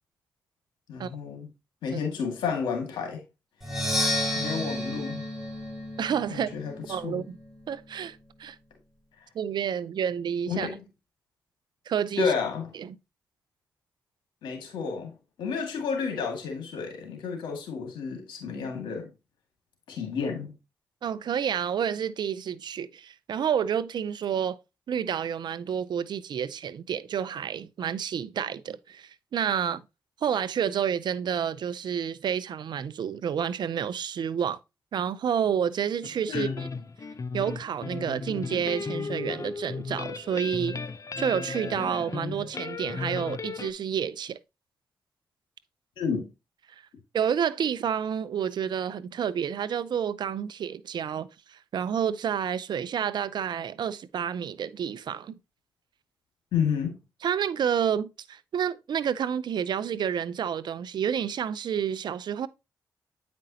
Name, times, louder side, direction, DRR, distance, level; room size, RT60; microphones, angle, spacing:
voice 1, 0.9-1.5 1.8-3.2 4.3-5.2 6.3-7.2 10.5-10.8 12.2-12.7 14.4-15.1 15.4-19.1 19.9-20.5 36.3-36.7 46.0-46.3 56.5-57.0, left 6 dB, 90° left, 2.0 m, -31 dB
Percussion, 3.6-7.4, left 1 dB, 5° right, 4.6 m, -31 dB
voice 2, 6.0-6.5 6.9-7.4 7.7-8.6 9.3-10.7 11.9-12.3 12.8-12.9 21.0-24.6 24.9-29.8 30.2-34.6 34.9-36.5 37.3-40.8 41.2-44.4 47.1-55.3 57.2-62.5, right 8 dB, 70° right, 0.5 m, -29 dB
sound 1, 36.0-43.7, left 4 dB, 45° left, 0.7 m, -35 dB
8.7 x 5.2 x 2.8 m
supercardioid pair, 45°, 8 cm